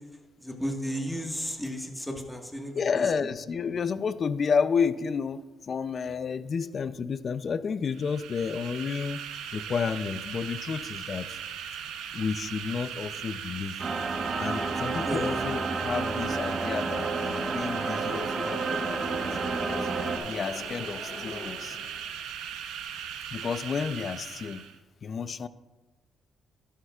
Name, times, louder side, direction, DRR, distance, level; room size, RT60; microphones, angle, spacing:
voice 1, 0.4-2.8 15.0-15.3, equal, 5° left, 2 dB, 1.6 m, -33 dB
voice 2, 2.7-9.2 9.5-11.4 12.1-13.8 14.4-19.4 19.7-19.9 20.2-21.8 23.3-24.6 25.0-25.5, left 6 dB, 50° left, 14 dB, 0.5 m, -31 dB
sound 1, 7.9-24.8, right 8 dB, 90° right, 0.8 m, -39 dB
sound 2, 13.8-20.2, right 4 dB, 40° right, 1.2 m, -30 dB
sound 3, 14.3-22.3, left 3 dB, 65° left, 1.4 m, -45 dB
13.0 x 10.0 x 2.4 m, 1.2 s
cardioid pair, 90°, 0 cm